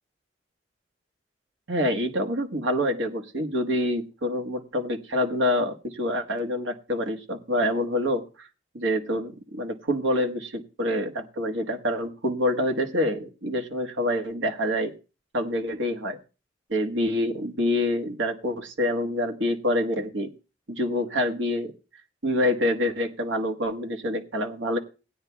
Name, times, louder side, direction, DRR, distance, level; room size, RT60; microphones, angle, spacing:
voice 1, 1.7-8.5 8.7-14.9 15.3-16.2 16.7-20.3 20.7-21.7 22.2-24.8, left 1 dB, 90° right, 4 dB, 1.3 m, -26 dB
18.5 x 9.6 x 2.3 m, 0.32 s
head